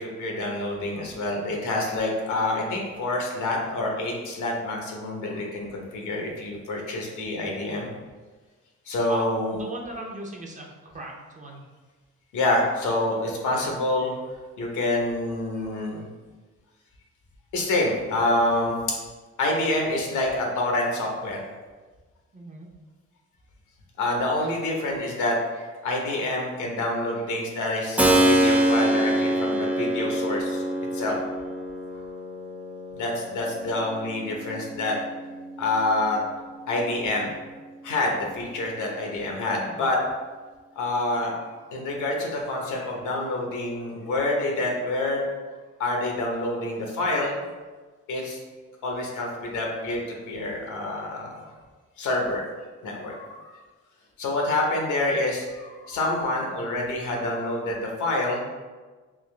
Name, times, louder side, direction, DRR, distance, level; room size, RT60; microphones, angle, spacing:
voice 1, 0.0-7.9 8.9-9.6 12.3-14.2 14.6-16.0 17.5-18.8 19.4-21.5 24.0-30.6 30.9-31.2 32.9-35.0 35.6-36.2 36.7-37.3 37.8-40.0 40.7-41.4 41.7-45.2 45.8-47.3 48.1-48.4 48.8-51.4 52.0-52.4 52.8-53.6 54.2-58.5, left 2 dB, 80° left, 0 dB, 0.9 m, -27 dB
voice 2, 9.1-11.6 22.3-22.7 39.7-39.9, equal, 25° right, -1 dB, 0.7 m, -37 dB
Keyboard (musical), 28.0-36.6, right 1 dB, 5° right, 0.3 m, -26 dB
3.6 x 2.9 x 3.2 m, 1.4 s
cardioid pair, 90°, 30 cm